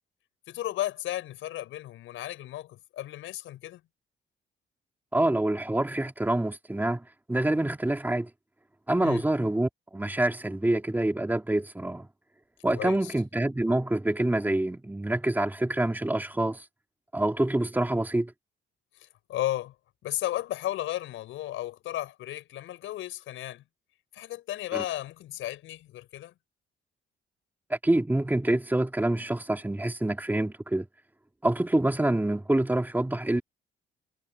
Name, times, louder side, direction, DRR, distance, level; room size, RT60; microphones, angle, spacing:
voice 1, 0.5-3.8 9.0-9.2 12.7-13.1 19.0-19.7 20.0-23.6 24.1-26.3, left 14 dB, 85° left, 5.8 m, -34 dB
voice 2, 5.1-8.3 8.9-12.1 12.6-16.6 17.1-18.3 24.7-24.8 27.7-30.9 31.4-33.4, right 1 dB, 10° right, 2.4 m, -26 dB
cardioid pair, 90°, 20 cm